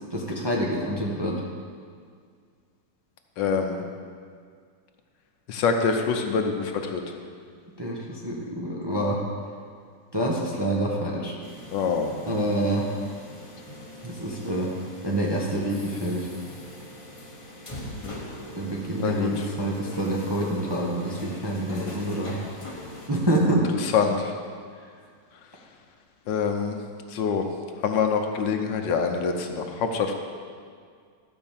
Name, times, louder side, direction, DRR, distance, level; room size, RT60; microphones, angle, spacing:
voice 1, 0.1-1.4 7.8-9.2 10.1-11.4 12.2-12.9 14.0-14.7 15.0-16.3 18.5-22.4 23.1-23.7, right 1 dB, 20° right, -3 dB, 0.8 m, -27 dB
voice 2, 3.4-3.8 5.5-7.1 11.7-12.1 18.0-18.2 19.0-19.4 23.9-24.3 26.3-26.8 27.1-27.5 27.8-30.1, left 5 dB, 75° left, 4 dB, 1.5 m, -25 dB
sound 1, 11.4-23.1, left 1 dB, 20° left, 1.0 m, -42 dB
12.5 x 5.2 x 7.2 m, 2.1 s
omnidirectional pair, 2.0 m